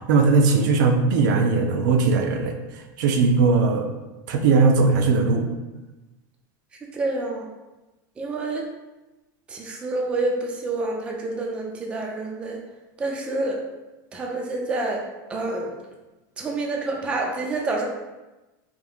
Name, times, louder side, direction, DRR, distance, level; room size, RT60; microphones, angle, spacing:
voice 1, 0.1-2.6 3.0-3.9 4.3-5.5, right 4 dB, 70° right, 4 dB, 0.5 m, -19 dB
voice 2, 6.9-7.5 8.2-8.7 9.5-12.6 13.0-13.6 14.1-15.0 15.3-15.7 16.4-17.8, right 2 dB, 10° right, 0 dB, 0.3 m, -28 dB
3.5 x 2.5 x 3.4 m, 1.1 s
supercardioid pair, 170°, 11 cm